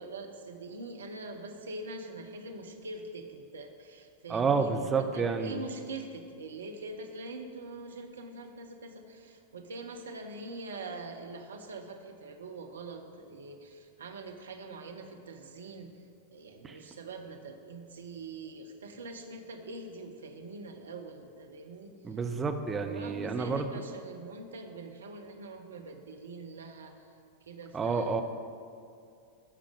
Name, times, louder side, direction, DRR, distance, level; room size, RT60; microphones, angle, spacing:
voice 1, 0.0-15.9 16.3-21.9 22.8-27.1 27.4-28.2, right 2 dB, 70° right, 5 dB, 0.8 m, -43 dB
voice 2, 4.3-5.6 16.6-16.8 22.0-23.7 27.7-28.2, right 5 dB, 20° right, 6 dB, 0.7 m, -29 dB
12.5 x 5.1 x 5.1 m, 2.4 s
figure-of-eight pair, 90°, 0 cm